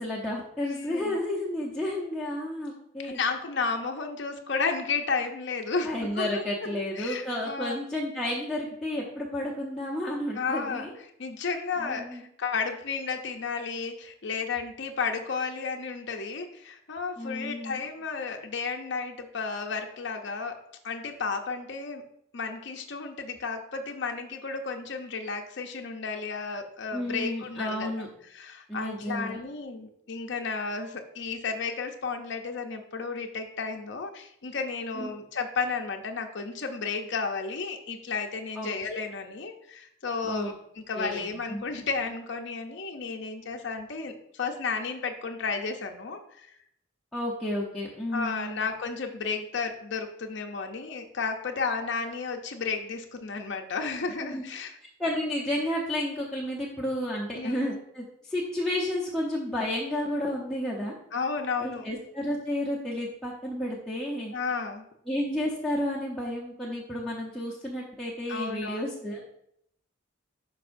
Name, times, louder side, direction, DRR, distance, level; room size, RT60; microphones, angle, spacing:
voice 1, 0.0-3.2 5.8-10.9 11.8-12.2 17.2-17.8 26.9-28.1 28.7-29.4 35.0-35.1 38.6-38.7 40.2-40.5 40.9-41.6 47.1-48.6 54.2-54.4 55.0-60.9 61.6-64.4 65.1-69.2, left 1 dB, 5° left, -7 dB, 0.8 m, -31 dB
voice 2, 0.6-1.2 3.0-6.7 7.0-7.8 10.4-10.9 11.2-20.6 20.8-22.0 22.3-28.0 28.3-46.6 48.1-54.8 57.3-57.7 61.1-61.8 64.3-64.9 68.3-68.8, left 4 dB, 60° left, 4 dB, 0.6 m, -33 dB
11.5 x 4.7 x 2.6 m, 0.73 s
head